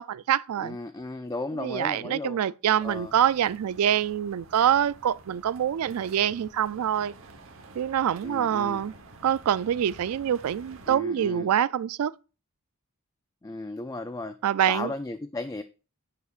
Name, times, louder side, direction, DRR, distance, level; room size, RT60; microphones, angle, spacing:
voice 1, 0.0-0.8 1.6-7.1 7.8-8.9 9.2-12.1 14.4-14.9, right 9 dB, 80° right, 0.3 m, -25 dB
voice 2, 0.6-2.4 2.8-3.1 8.2-8.8 10.9-11.5 13.4-14.4 14.7-15.6, left 2 dB, 15° left, 0.3 m, -35 dB
sound 1, 2.8-11.0, right 2 dB, 65° right, 1.1 m, -50 dB
11.0 x 8.3 x 2.4 m
head